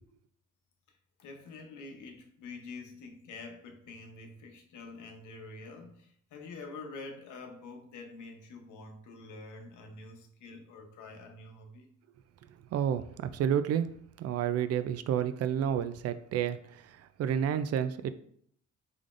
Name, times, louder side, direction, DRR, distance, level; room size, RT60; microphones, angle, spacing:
voice 1, 0.9-11.9, left 3 dB, 75° left, 4 dB, 0.9 m, -47 dB
voice 2, 12.7-13.9 14.2-18.1, right 9 dB, 55° right, 12 dB, 0.4 m, -30 dB
5.0 x 3.8 x 2.5 m, 0.65 s
cardioid pair, 90°, 30 cm